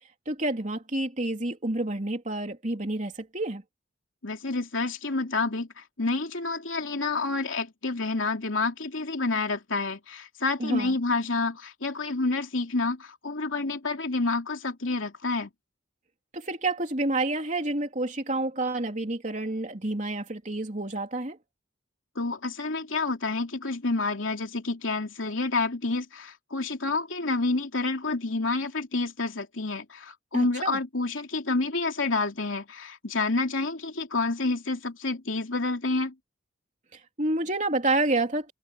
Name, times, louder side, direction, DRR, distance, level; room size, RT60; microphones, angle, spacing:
voice 1, 0.2-3.6 10.6-10.9 16.3-21.4 30.3-30.8 36.9-38.5, right 2 dB, 40° right, 3.3 m, -29 dB
voice 2, 4.2-15.5 22.1-36.1, left 3 dB, 85° left, 3.1 m, -29 dB
head